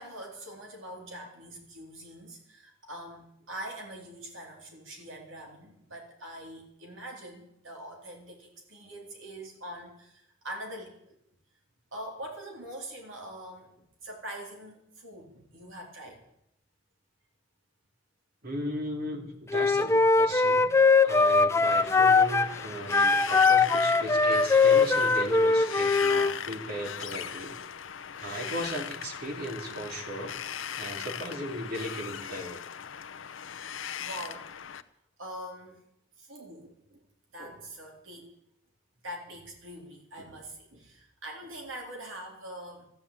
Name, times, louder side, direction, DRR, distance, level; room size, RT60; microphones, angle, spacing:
voice 1, 0.0-11.2 11.9-16.2 28.6-28.7 29.7-30.0 30.7-30.9 34.0-34.5 35.2-35.8 36.2-37.0 37.3-38.3 39.0-42.9, right 1 dB, 85° right, 0 dB, 3.6 m, -43 dB
voice 2, 18.4-20.7 21.0-27.6 28.2-30.3 30.8-32.6, equal, 50° right, 2 dB, 3.1 m, -36 dB
Wind instrument woodwind instrument, 19.5-22.5 22.9-26.3, left 4 dB, 15° left, 0.5 m, -21 dB
Wind, 21.6-34.8, left 8 dB, 90° left, 0.8 m, -39 dB
14.0 x 10.5 x 8.6 m, 0.77 s
head